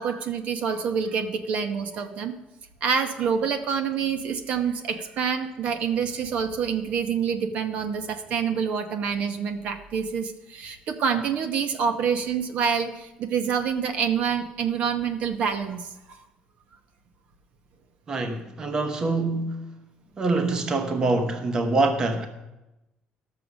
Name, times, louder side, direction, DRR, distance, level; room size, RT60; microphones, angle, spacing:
voice 1, 0.0-2.3 2.8-15.9, right 6 dB, 50° right, 8 dB, 0.9 m, -27 dB
voice 2, 18.1-19.7 20.2-22.3, right 3 dB, 25° right, 7 dB, 0.9 m, -25 dB
13.0 x 6.8 x 6.1 m, 0.96 s
cardioid pair, 175°, 3 cm